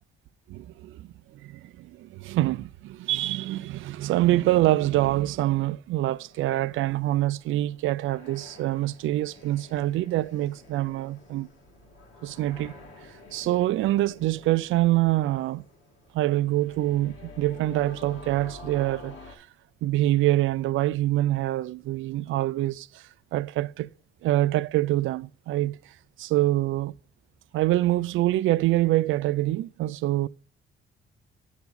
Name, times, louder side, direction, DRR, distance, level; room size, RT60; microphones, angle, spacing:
voice 1, 0.5-1.1 1.4-11.5 12.2-12.7 13.3-15.6 16.1-19.2 19.8-22.9 23.3-23.9 24.2-25.8 26.2-26.9 27.5-30.3, right 15 dB, 80° right, 0.5 m, -25 dB
sound 1, 6.2-19.4, left 3 dB, 85° left, 2.8 m, -49 dB
9.4 x 7.1 x 4.0 m
cardioid pair, 90°, 20 cm